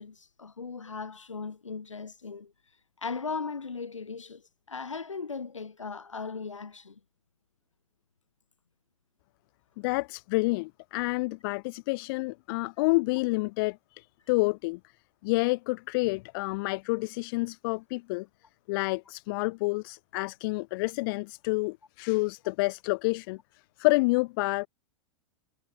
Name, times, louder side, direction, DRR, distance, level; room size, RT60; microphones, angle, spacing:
voice 1, 0.0-2.5 3.0-4.4 4.7-7.0, left 5 dB, 75° left, 5.4 m, -37 dB
voice 2, 9.8-14.8 15.2-18.3 18.7-23.4 23.8-24.7, left 25 dB, 45° left, 2.8 m, -28 dB
figure-of-eight pair, 95°, 16 cm